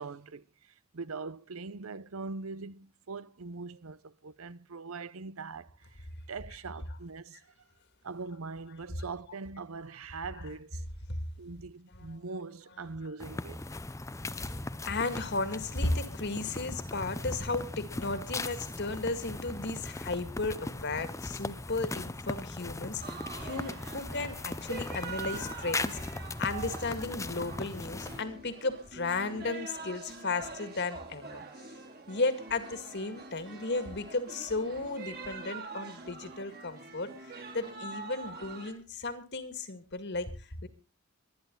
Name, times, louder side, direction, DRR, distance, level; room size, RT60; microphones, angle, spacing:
voice 1, 0.0-7.4 8.0-10.9 11.4-13.6, right 4 dB, 90° right, 0.8 m, -42 dB
sound 1, 13.2-28.2, left 2 dB, 15° left, 0.6 m, -39 dB
voice 2, 14.9-31.4 32.1-40.7, left 3 dB, 55° left, 2.1 m, -35 dB
sound 2, 23.0-38.7, right 4 dB, 50° right, 3.4 m, -45 dB
24.0 x 10.5 x 3.9 m
head